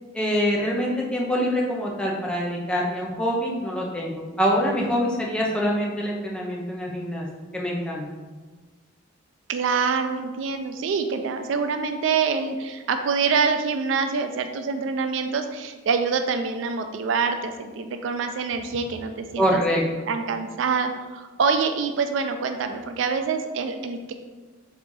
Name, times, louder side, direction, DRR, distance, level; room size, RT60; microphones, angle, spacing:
voice 1, 0.1-7.3 7.5-8.0 19.4-19.8, equal, 5° left, -3 dB, 0.6 m, -25 dB
voice 2, 9.5-19.6 20.1-24.1, right 5 dB, 70° right, 7 dB, 0.4 m, -25 dB
3.8 x 3.1 x 3.6 m, 1.3 s
head